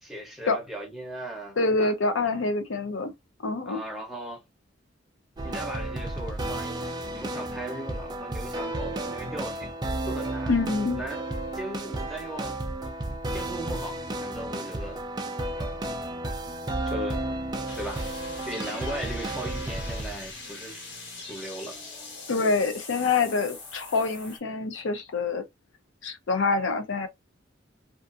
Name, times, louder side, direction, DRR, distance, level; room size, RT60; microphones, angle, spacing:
voice 1, 0.0-1.9 3.6-4.4 5.4-9.7 10.0-10.5 10.9-11.3 11.5-12.6 13.3-15.0 15.5-15.9 16.8-17.2 17.8-18.1 18.4-20.9 21.3-21.8, right 1 dB, ahead, 0.8 m, -38 dB
voice 2, 1.6-3.1 3.4-3.8 10.5-11.0 22.3-25.4 26.0-27.1, left 3 dB, 80° left, 0.5 m, -26 dB
sound 1, 5.4-20.3, right 2 dB, 20° right, 0.4 m, -33 dB
sound 2, 17.7-24.4, left 3 dB, 65° left, 1.3 m, -42 dB
2.5 x 2.4 x 2.4 m
head